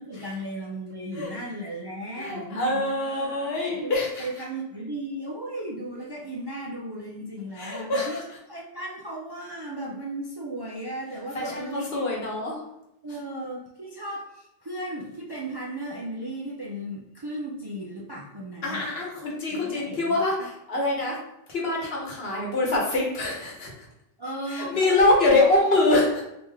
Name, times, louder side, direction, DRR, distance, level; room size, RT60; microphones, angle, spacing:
voice 1, 0.0-3.3 3.6-3.9 4.2-8.2 8.5-12.1 13.0-18.9 19.5-20.1 24.2-25.3, right 1 dB, 40° right, -3 dB, 0.4 m, -36 dB
voice 2, 2.2-4.3 7.6-8.2 11.3-12.6 18.6-21.2 21.5-23.7 24.5-26.2, left 2 dB, 75° left, -2 dB, 1.3 m, -24 dB
3.1 x 2.8 x 3.5 m, 0.84 s
omnidirectional pair, 1.0 m